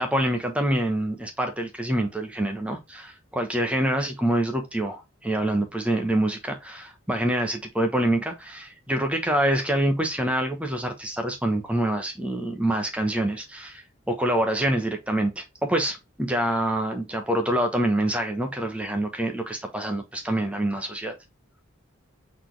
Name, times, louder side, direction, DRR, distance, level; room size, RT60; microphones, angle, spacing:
voice 1, 0.0-21.1, right 1 dB, 5° right, 0.9 m, -26 dB
4.1 x 4.1 x 3.2 m
head